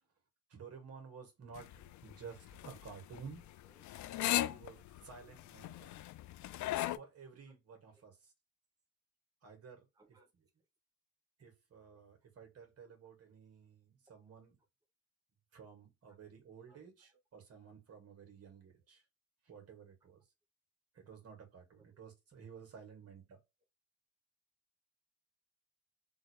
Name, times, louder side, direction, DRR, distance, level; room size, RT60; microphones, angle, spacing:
voice 1, 0.5-3.4 4.4-5.9 6.9-8.2 9.4-9.9 11.4-14.5 15.5-19.0 19.5-20.2 21.0-23.4, right 6 dB, 55° right, 2.1 m, -53 dB
sound 1, 1.5-7.0, left 14 dB, 70° left, 0.5 m, -38 dB
voice 2, 3.2-3.9 5.0-5.4 5.7-5.9 7.5-7.6 7.9-8.1 9.9-10.3 12.8-12.9 16.1-16.2 16.7-17.2 20.0-20.1 21.8-22.0 23.0-23.1, right 2 dB, 10° right, 0.8 m, -71 dB
3.7 x 2.8 x 3.2 m
cardioid pair, 90°, 30 cm